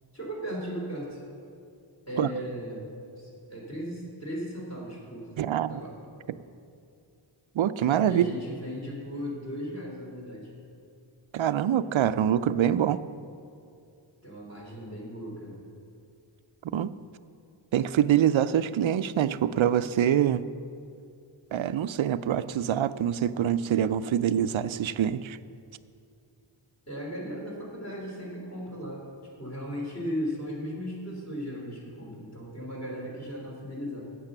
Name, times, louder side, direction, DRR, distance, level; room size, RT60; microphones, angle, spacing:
voice 1, 0.1-1.2 2.1-2.9 3.2-5.3 5.7-5.9 8.0-10.5 14.2-15.6 26.9-29.0 29.4-34.0, equal, 30° left, -5 dB, 3.3 m, -36 dB
voice 2, 5.4-5.7 7.6-8.3 11.3-13.0 16.7-16.9 17.7-20.4 21.5-25.4, right 10 dB, 70° right, 14 dB, 0.5 m, -25 dB
12.0 x 8.4 x 6.7 m, 2.5 s
wide cardioid pair, 80°, 49 cm